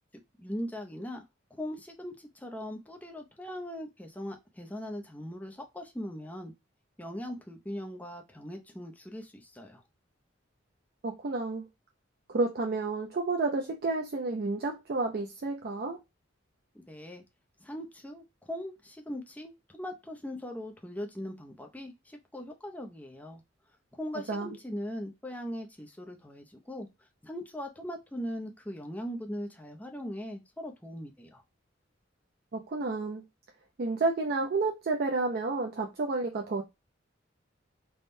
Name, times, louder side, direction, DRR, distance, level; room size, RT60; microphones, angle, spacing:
voice 1, 0.4-1.2 1.6-6.5 7.0-9.8 16.7-17.2 17.6-23.4 23.9-26.9 27.2-31.4, equal, 10° left, 0.5 m, -40 dB
voice 2, 11.0-11.6 12.3-16.0 24.3-24.5 32.5-33.2 33.8-36.6, right 3 dB, 50° right, 0.4 m, -30 dB
3.4 x 2.1 x 2.5 m
head